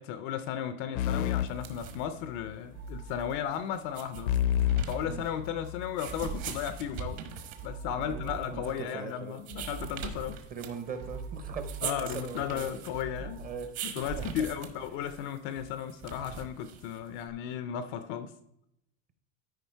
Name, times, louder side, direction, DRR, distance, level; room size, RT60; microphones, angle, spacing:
voice 1, 0.0-4.3 4.8-7.2 7.6-10.4 11.8-13.4 13.8-18.3, left 9 dB, 35° left, 11 dB, 0.4 m, -35 dB
sound 1, 1.0-2.6 4.3-6.0, left 11 dB, 75° left, 0.6 m, -30 dB
sound 2, 1.4-17.3, right 7 dB, 45° right, 1.2 m, -42 dB
sound 3, 2.7-14.3, right 4 dB, 75° right, 3.6 m, -44 dB
voice 2, 7.9-9.4 10.5-12.8 13.4-13.7 14.2-14.3, right 6 dB, 20° right, 9 dB, 0.7 m, -40 dB
13.0 x 5.1 x 4.5 m, 0.79 s
supercardioid pair, 165°, 41 cm